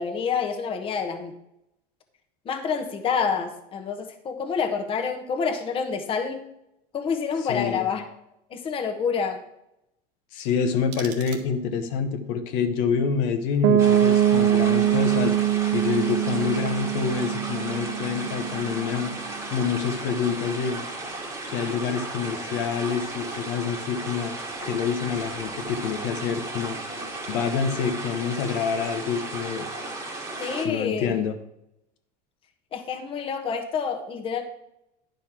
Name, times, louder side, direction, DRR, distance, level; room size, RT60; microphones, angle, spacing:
voice 1, 0.0-1.3 2.4-6.4 6.9-8.0 8.5-9.4 30.4-31.3 32.7-34.4, left 6 dB, 25° left, 4 dB, 1.2 m, -28 dB
voice 2, 7.4-7.9 10.3-15.4 15.7-19.1 19.5-20.8 21.5-26.8 27.3-29.7 30.6-31.3, left 6 dB, 65° left, 6 dB, 1.1 m, -27 dB
sound 1, 10.4-11.9, right 7 dB, 80° right, 1.7 m, -43 dB
Piano, 13.6-19.3, right 11 dB, 65° right, 0.7 m, -23 dB
sound 2, 13.8-30.7, right 2 dB, 15° right, 1.5 m, -35 dB
10.0 x 5.3 x 6.0 m, 0.82 s
supercardioid pair, 135°, 20 cm